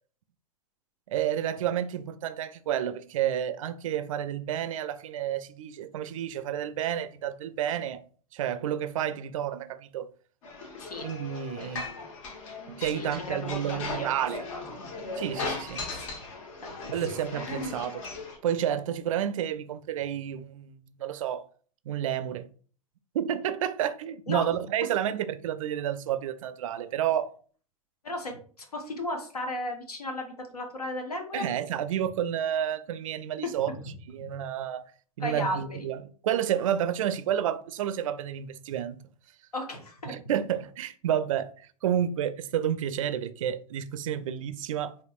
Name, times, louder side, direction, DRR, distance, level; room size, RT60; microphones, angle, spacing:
voice 1, 1.1-8.0 8.3-10.1 11.0-11.9 12.7-14.4 15.2-15.8 16.9-18.1 18.4-21.4 21.9-22.5 23.1-27.3 31.3-33.7 34.1-34.8 35.2-36.0 36.2-39.0 40.1-45.0, right 10 dB, 60° right, 0.4 m, -30 dB
sound 1, 10.4-18.4, left 3 dB, 55° left, 1.1 m, -38 dB
voice 2, 12.9-14.1 14.5-14.6 15.7-16.1 16.6-17.2 24.3-24.4 28.0-31.5 33.4-33.8 34.2-34.3 35.2-35.8 39.5-40.1, left 1 dB, 80° left, 1.0 m, -35 dB
4.6 x 3.0 x 2.4 m
figure-of-eight pair, 90°, 19 cm